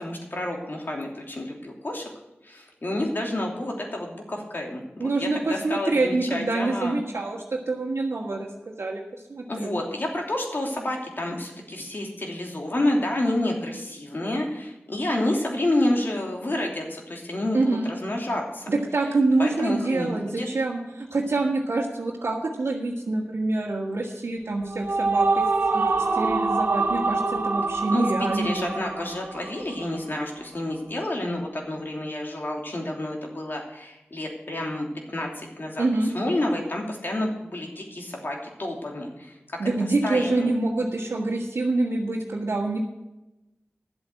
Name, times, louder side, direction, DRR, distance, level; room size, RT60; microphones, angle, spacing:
voice 1, 0.0-2.1 2.4-7.0 9.5-18.7 19.4-20.5 27.9-35.8 36.1-39.4 40.0-40.5, left 1 dB, 50° left, 0 dB, 2.9 m, -29 dB
voice 2, 5.0-9.0 9.3-9.7 17.5-17.9 18.7-25.4 25.7-25.8 26.1-28.7 35.8-36.1 39.6-42.8, right 2 dB, 90° right, -5 dB, 1.7 m, -26 dB
sound 1, 24.5-30.0, right 3 dB, 55° right, 1.2 m, -25 dB
11.5 x 7.9 x 7.7 m, 0.96 s
wide cardioid pair, 65°, 4 cm